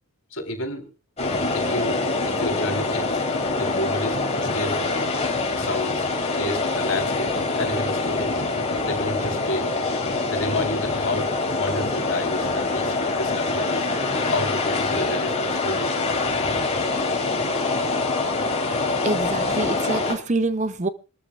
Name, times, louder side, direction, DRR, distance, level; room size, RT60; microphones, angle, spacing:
voice 1, 0.3-0.9 1.5-3.2 3.6-5.1 5.5-8.4 8.8-9.7 10.3-13.9 14.2-16.3, left 2 dB, 60° left, 3.9 m, -31 dB
sound 1, 1.2-20.1, left 3 dB, 30° left, 3.7 m, -25 dB
voice 2, 19.0-20.9, right 2 dB, 30° right, 0.6 m, -25 dB
26.5 x 13.5 x 2.4 m
head